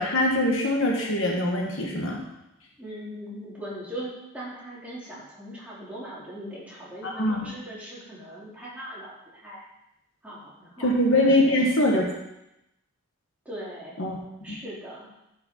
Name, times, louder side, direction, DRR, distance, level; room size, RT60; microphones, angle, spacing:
voice 1, 0.0-2.2 7.0-7.5 10.8-12.1 14.0-14.2, left 1 dB, 70° left, 0 dB, 1.5 m, -23 dB
voice 2, 2.8-9.6 10.2-11.6 13.4-14.0 14.4-15.1, equal, 5° right, -8 dB, 2.9 m, -40 dB
11.0 x 5.5 x 4.4 m, 0.87 s
head